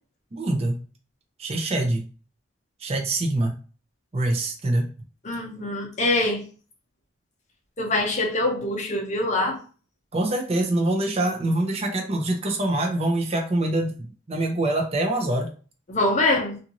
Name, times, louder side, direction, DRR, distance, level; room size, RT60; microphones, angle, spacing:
voice 1, 0.3-0.8 1.4-2.1 2.8-3.5 4.1-4.9 10.1-15.5, right 1 dB, 30° right, 3 dB, 0.5 m, -24 dB
voice 2, 5.2-6.4 7.8-9.6 15.9-16.6, left 2 dB, 35° left, 0 dB, 0.7 m, -24 dB
2.6 x 2.5 x 2.9 m, 0.38 s
head